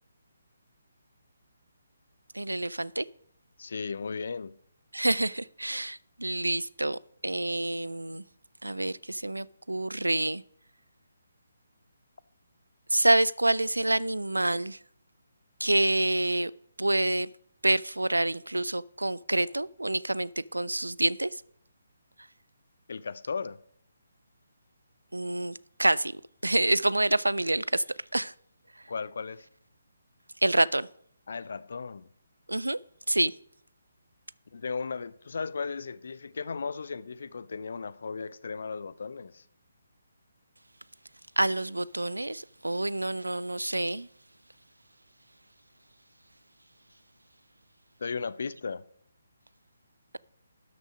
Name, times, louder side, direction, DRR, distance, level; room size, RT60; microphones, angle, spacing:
voice 1, 2.3-3.1 4.9-8.2 8.6-10.4 12.9-14.8 15.6-16.5 16.8-17.3 17.6-21.4 25.1-27.8 28.1-28.3 30.4-30.9 32.5-32.8 33.1-33.3 41.4-44.1, right 1 dB, 80° right, 0.4 m, -27 dB
voice 2, 3.6-4.6 22.9-23.6 28.9-29.5 31.3-32.1 34.5-39.4 48.0-48.8, left 5 dB, 55° left, 0.5 m, -36 dB
12.0 x 6.3 x 5.0 m
figure-of-eight pair, 140°, 0 cm